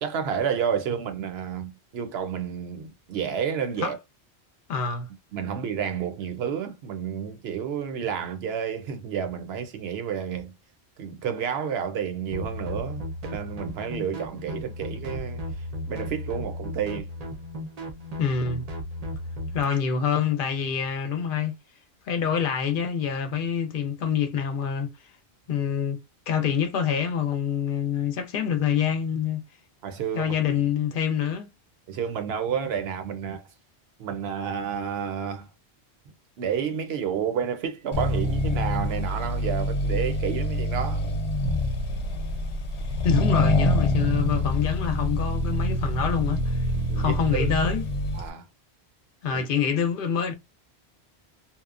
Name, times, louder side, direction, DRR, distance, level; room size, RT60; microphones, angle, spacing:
voice 1, 0.0-4.0 5.3-10.5 11.0-15.4 15.9-17.1 29.8-30.3 31.9-33.4 34.0-35.5 36.4-41.1 46.8-47.5 48.1-48.5 49.3-49.4, right 7 dB, 70° right, 0.8 m, -30 dB
voice 2, 4.7-5.1 18.2-18.6 19.5-21.5 22.1-24.9 25.5-26.0 26.3-29.4 30.1-31.5 43.0-46.6 47.0-47.8 49.2-50.3, left 7 dB, 60° left, 0.6 m, -26 dB
sound 1, 12.3-19.6, left 1 dB, 45° right, 0.6 m, -35 dB
Accelerating revving vroom, 37.9-48.3, left 1 dB, 90° left, 0.9 m, -26 dB
2.9 x 2.0 x 2.4 m
omnidirectional pair, 1.1 m